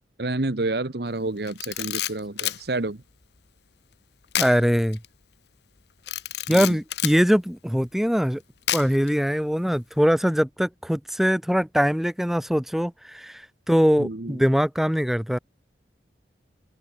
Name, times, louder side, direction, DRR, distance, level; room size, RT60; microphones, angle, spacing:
voice 1, 0.2-3.0 6.5-6.8 14.0-14.4, right 2 dB, 60° right, 1.1 m, -29 dB
Camera, 1.5-2.6 4.3-4.6 4.9-5.1 6.1-7.2 8.7-9.1, left 12 dB, 65° left, 1.0 m, -28 dB
voice 2, 4.4-5.0 6.5-8.4 8.7-15.4, equal, ahead, 0.3 m, -22 dB
open air
head